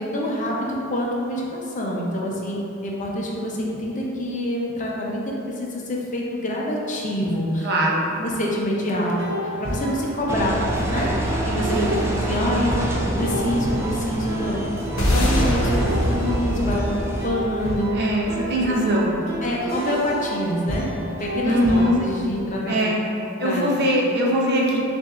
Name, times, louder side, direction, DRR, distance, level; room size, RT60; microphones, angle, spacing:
voice 1, 0.0-7.7 8.2-9.2 9.6-10.6 10.9-11.8 12.3-14.6 15.0-15.7 16.0-17.9 18.5-18.9 19.4-22.9 23.4-24.0, equal, 35° left, -3 dB, 0.6 m, -26 dB
voice 2, 7.6-8.1 11.7-12.0 17.9-19.2 21.4-22.0 22.7-23.0 23.4-24.8, equal, 55° right, -3 dB, 0.7 m, -21 dB
sound 1, 9.1-22.1, right 1 dB, 30° right, 1.0 m, -31 dB
Engine, 10.3-17.3, right 1 dB, 10° right, 0.3 m, -27 dB
sound 2, 15.0-19.4, equal, 70° left, 0.9 m, -24 dB
7.3 x 2.6 x 2.4 m, 2.7 s
head